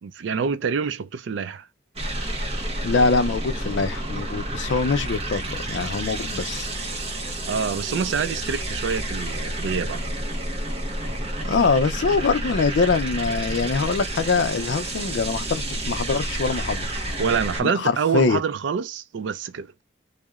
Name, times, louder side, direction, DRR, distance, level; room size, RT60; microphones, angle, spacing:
voice 1, 0.0-1.7 7.5-10.0 17.2-19.7, right 6 dB, 70° right, 0.4 m, -26 dB
sound 1, 2.0-17.6, right 1 dB, 30° right, 0.7 m, -30 dB
voice 2, 2.8-6.7 11.1-11.2 11.4-16.9 17.6-18.4, left 4 dB, 70° left, 0.4 m, -23 dB
2.8 x 2.0 x 2.3 m
head